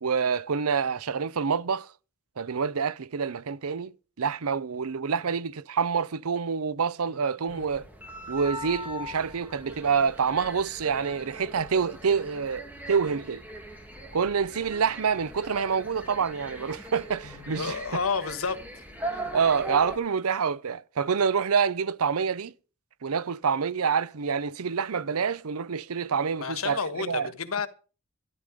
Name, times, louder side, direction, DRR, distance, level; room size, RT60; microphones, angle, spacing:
voice 1, 0.0-1.9 2.4-7.9 8.3-13.4 14.1-18.0 19.1-22.5 23.0-27.3, right 6 dB, 85° right, 0.6 m, -27 dB
sound 1, 7.5-20.0, equal, 10° right, 2.1 m, -41 dB
voice 2, 17.2-18.6 26.4-27.7, left 5 dB, 75° left, 1.5 m, -31 dB
13.0 x 11.0 x 5.1 m
head